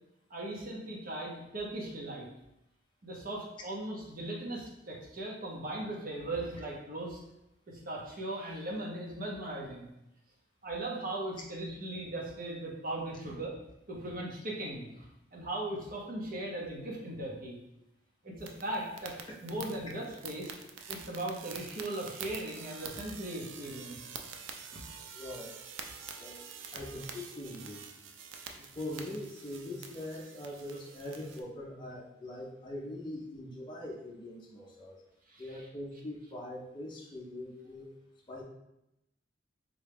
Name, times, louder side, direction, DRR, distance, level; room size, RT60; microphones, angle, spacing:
voice 1, 0.3-2.3 3.0-7.2 7.7-9.9 10.6-13.5 13.9-15.1 15.3-17.6 18.2-19.1 19.4-20.5 20.9-24.1 24.7-24.8 35.3-35.7, right 1 dB, 50° right, -3 dB, 0.8 m, -38 dB
sound 1, 18.4-31.4, right 6 dB, 90° right, 0.4 m, -47 dB
voice 2, 25.1-25.6 26.2-26.4 26.7-27.9 28.6-35.0 35.4-37.9 38.3-38.4, left 1 dB, 25° left, -3 dB, 0.5 m, -42 dB
3.7 x 2.2 x 3.3 m, 0.87 s
head